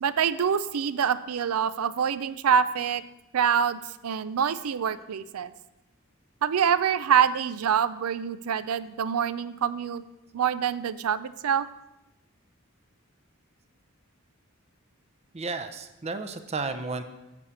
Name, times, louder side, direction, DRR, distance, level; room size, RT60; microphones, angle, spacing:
voice 1, 0.0-3.0 3.3-5.5 6.4-10.0 10.3-11.7, right 7 dB, 90° right, 15 dB, 0.4 m, -25 dB
voice 2, 15.3-17.0, right 3 dB, 30° right, 8 dB, 0.6 m, -33 dB
8.3 x 4.9 x 7.2 m, 0.95 s
head